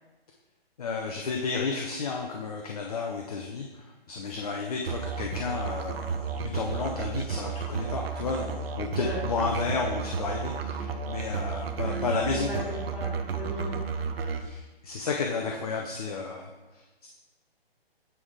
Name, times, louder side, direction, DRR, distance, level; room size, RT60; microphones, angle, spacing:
voice 1, 0.8-12.7 14.4-16.5 17.0-17.1, left 4 dB, 40° left, 1 dB, 0.5 m, -32 dB
Musical instrument, 4.9-14.5, right 5 dB, 70° right, 0.7 m, -32 dB
voice 2, 8.8-9.7 12.3-13.8, left 1 dB, 5° right, -11 dB, 0.7 m, -37 dB
8.3 x 3.3 x 3.6 m, 1.2 s
hypercardioid pair, 160°, 31 cm